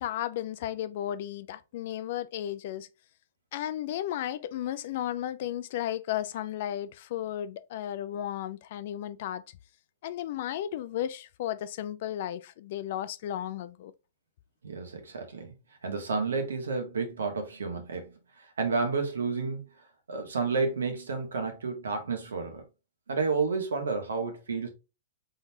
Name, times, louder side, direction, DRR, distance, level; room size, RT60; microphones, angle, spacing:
voice 1, 0.0-2.9 3.5-9.4 10.0-13.9, left 11 dB, 55° left, 0.5 m, -34 dB
voice 2, 14.6-15.5 15.8-18.1 18.6-19.6 20.1-22.6 23.1-24.7, right 4 dB, 80° right, 1.4 m, -30 dB
4.0 x 3.9 x 2.7 m
hypercardioid pair, 115°, 0 cm